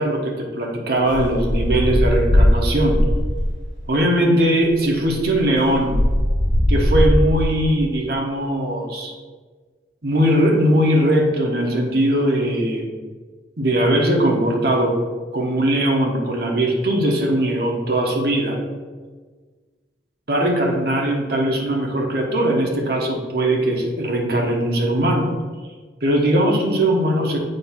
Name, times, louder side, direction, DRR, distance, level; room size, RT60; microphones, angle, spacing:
voice 1, 0.0-3.0 3.9-6.0 6.7-9.1 10.0-12.9 13.6-15.0 15.3-18.6 20.3-25.3 26.0-27.4, right 1 dB, 55° right, 1 dB, 1.1 m, -20 dB
sound 1, 1.1-3.6 4.6-4.7 5.0-7.6, equal, 90° right, 2.0 m, -19 dB
7.7 x 2.8 x 5.9 m, 1.4 s
head